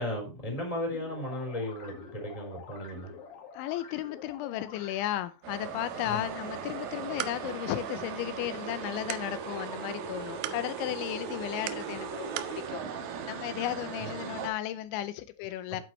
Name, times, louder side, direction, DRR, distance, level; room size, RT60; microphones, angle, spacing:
voice 1, 0.0-3.1 6.1-6.2 14.0-14.1, left 1 dB, 10° left, 3.2 m, -35 dB
sound 1, 0.9-5.3, left 6 dB, 55° left, 3.1 m, -48 dB
voice 2, 3.5-12.8 13.3-15.8, left 13 dB, 85° left, 3.0 m, -34 dB
sound 2, 5.4-14.5, right 6 dB, 65° right, 2.7 m, -38 dB
sound 3, 6.8-12.6, right 14 dB, 85° right, 3.0 m, -43 dB
11.0 x 8.8 x 3.1 m
omnidirectional pair, 5.4 m